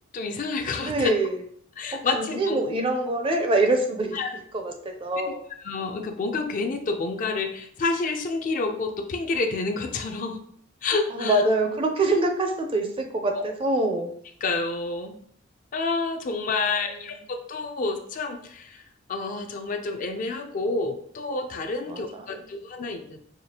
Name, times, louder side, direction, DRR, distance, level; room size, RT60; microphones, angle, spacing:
voice 1, 0.1-1.1 1.8-2.6 4.1-4.3 5.6-10.4 10.8-11.4 13.4-13.5 14.4-15.1 15.7-18.8 19.1-23.2, left 3 dB, 40° left, 5 dB, 0.4 m, -29 dB
voice 2, 0.8-1.4 1.9-4.2 4.5-5.4 11.1-14.1 16.3-17.1 21.9-22.3, right 2 dB, 25° right, 4 dB, 0.4 m, -25 dB
4.9 x 2.3 x 2.8 m, 0.63 s
head